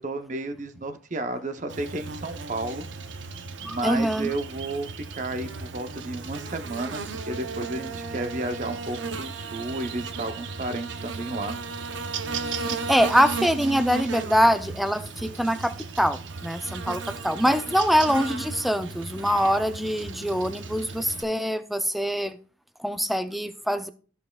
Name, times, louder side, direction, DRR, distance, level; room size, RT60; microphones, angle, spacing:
voice 1, 0.0-2.9 3.6-11.6, right 2 dB, 40° right, 0.6 m, -32 dB
Buzz, 1.7-21.2, right 4 dB, 75° right, 0.6 m, -35 dB
voice 2, 3.6-4.3 12.5-22.4 22.8-23.9, equal, ahead, 0.3 m, -24 dB
13.5 x 5.3 x 2.2 m
head